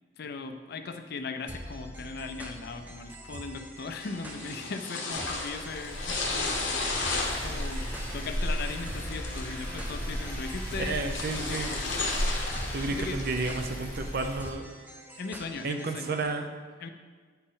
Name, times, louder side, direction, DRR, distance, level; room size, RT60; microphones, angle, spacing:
voice 1, 0.2-6.3 7.4-7.8 8.1-11.9 12.9-13.2 15.2-16.1 16.8-16.9, left 4 dB, 55° left, 7 dB, 0.5 m, -38 dB
sound 1, 1.5-16.2, right 1 dB, 10° right, 0.6 m, -46 dB
sound 2, 4.0-13.7, left 3 dB, 80° left, 1.0 m, -35 dB
sound 3, 5.1-14.5, equal, 10° left, 1.1 m, -35 dB
voice 2, 10.8-11.7 12.7-14.7 15.6-16.5, right 3 dB, 55° right, 6 dB, 0.6 m, -31 dB
8.8 x 4.2 x 3.8 m, 1.5 s
head